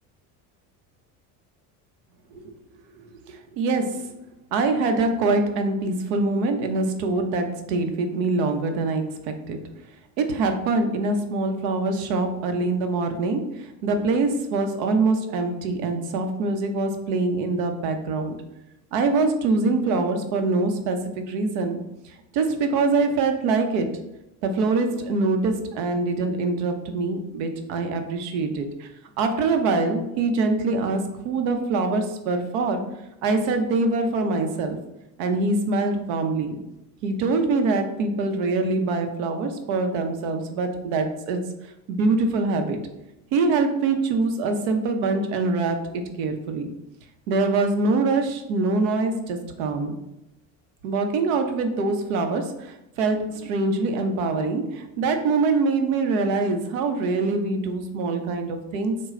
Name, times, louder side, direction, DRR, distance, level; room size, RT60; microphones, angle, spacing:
voice 1, 3.0-4.2 4.5-9.6 10.2-18.3 18.9-23.9 24.4-28.9 29.2-32.8 33.2-34.8 35.2-36.6 37.0-41.4 41.9-42.8 43.3-46.7 47.3-50.0 50.8-59.0, right 3 dB, 90° right, 6 dB, 0.8 m, -24 dB
6.3 x 2.2 x 3.7 m, 0.90 s
supercardioid pair, 105°, 41 cm